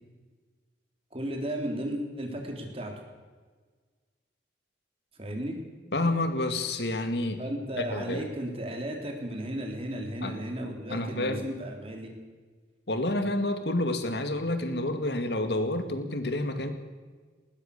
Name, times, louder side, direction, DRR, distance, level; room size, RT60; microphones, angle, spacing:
voice 1, 1.1-2.9 5.1-5.6 7.4-12.1, right 1 dB, 30° right, 2 dB, 3.9 m, -34 dB
voice 2, 5.9-7.4 7.8-8.3 10.2-10.3 10.9-11.4 12.9-16.7, left 1 dB, 65° left, 8 dB, 2.0 m, -29 dB
20.0 x 19.0 x 6.8 m, 1.4 s
head